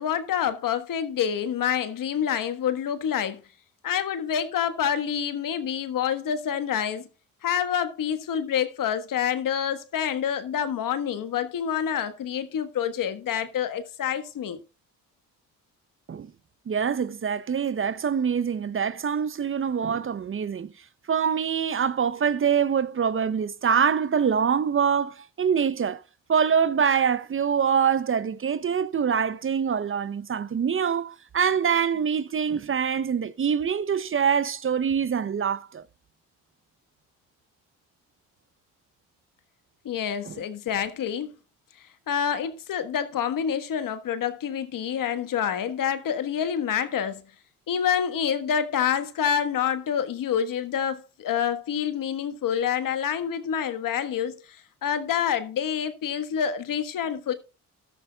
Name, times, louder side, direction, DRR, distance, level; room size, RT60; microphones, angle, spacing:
voice 1, 0.0-3.4 3.8-7.1 7.4-14.6 39.8-41.3 42.1-47.2 47.7-57.3, left 8 dB, 65° left, 1.5 m, -27 dB
voice 2, 16.7-20.7 21.1-26.0 26.3-35.8 40.3-40.4, right 7 dB, 35° right, 0.7 m, -24 dB
13.5 x 12.5 x 2.4 m
supercardioid pair, 65°, 36 cm